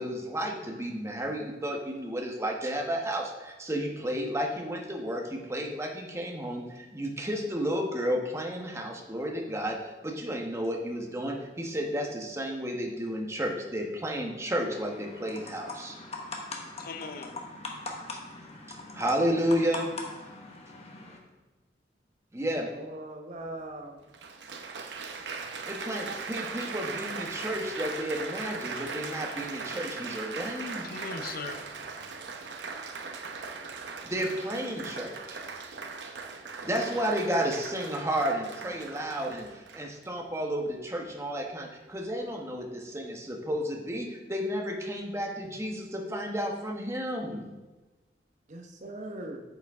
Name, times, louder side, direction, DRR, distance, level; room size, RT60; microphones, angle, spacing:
voice 1, 0.0-16.0 18.7-19.9 22.3-22.7 25.6-30.9 34.0-35.4 36.6-47.5, equal, 15° right, 1 dB, 1.1 m, -32 dB
sound 1, 14.7-21.2, left 3 dB, 35° left, 1.2 m, -41 dB
voice 2, 16.6-17.9 30.8-31.6, left 4 dB, 55° left, 7 dB, 0.7 m, -40 dB
voice 3, 22.6-24.0 48.5-49.4, right 1 dB, 45° right, 3 dB, 0.9 m, -40 dB
Applause, 23.4-23.5 24.1-40.1 40.8-41.1, right 4 dB, 70° right, 0.8 m, -39 dB
9.0 x 7.6 x 3.6 m, 1.2 s
head